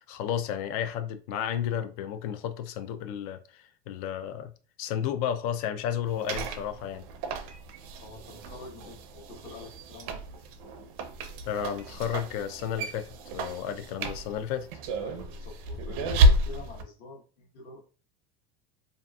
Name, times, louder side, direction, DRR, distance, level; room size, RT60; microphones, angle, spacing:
voice 1, 0.0-4.5 4.8-7.0 11.5-14.7, left 9 dB, 80° left, 0.4 m, -32 dB
sound 1, 6.1-16.8, right 1 dB, 75° right, 0.5 m, -30 dB
voice 2, 8.0-10.3 15.0-17.9, left 3 dB, 55° left, 1.1 m, -46 dB
2.7 x 2.4 x 2.3 m
cardioid pair, 160°, 19 cm